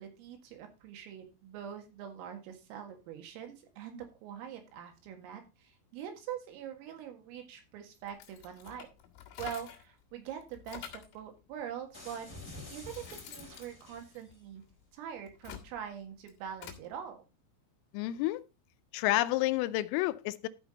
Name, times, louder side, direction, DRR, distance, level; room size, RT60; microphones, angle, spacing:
voice 1, 0.0-8.9 9.4-12.3 12.7-14.6 14.9-17.2, right 9 dB, 85° right, 4.4 m, -44 dB
sound 1, 8.1-9.9 10.3-11.2 12.0-12.1 12.6-14.7 15.2-16.9, left 10 dB, 65° left, 4.0 m, -48 dB
sound 2, 11.9-14.4, left 2 dB, 15° left, 4.1 m, -48 dB
voice 2, 17.9-18.4 18.9-20.5, left 16 dB, 85° left, 3.2 m, -29 dB
13.5 x 5.7 x 3.9 m
omnidirectional pair, 5.9 m